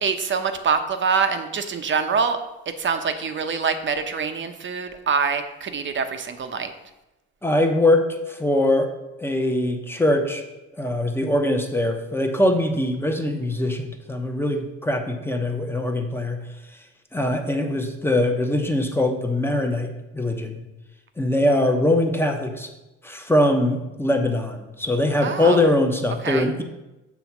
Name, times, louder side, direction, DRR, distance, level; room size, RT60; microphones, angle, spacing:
voice 1, 0.0-2.4 2.8-6.7 25.2-25.6 26.2-26.5, right 5 dB, 40° right, 8 dB, 0.8 m, -25 dB
voice 2, 7.4-8.9 9.2-10.4 10.8-16.4 17.1-20.6 21.2-22.7 23.0-26.6, left 1 dB, 10° left, 4 dB, 0.9 m, -22 dB
7.1 x 3.5 x 6.0 m, 1.0 s
cardioid pair, 90°, 30 cm